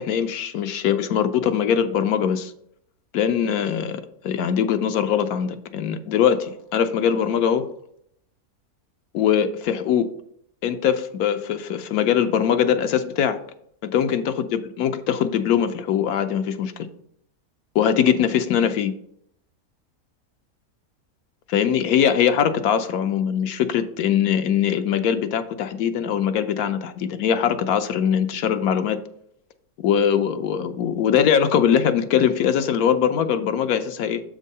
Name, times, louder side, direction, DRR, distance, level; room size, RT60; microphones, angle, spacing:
voice 1, 0.0-2.5 3.1-7.7 9.1-10.1 10.6-13.4 13.9-16.9 17.7-18.9 21.5-29.0 29.8-34.2, left 8 dB, 80° left, 9 dB, 1.1 m, -22 dB
7.3 x 3.7 x 5.4 m, 0.71 s
omnidirectional pair, 1.6 m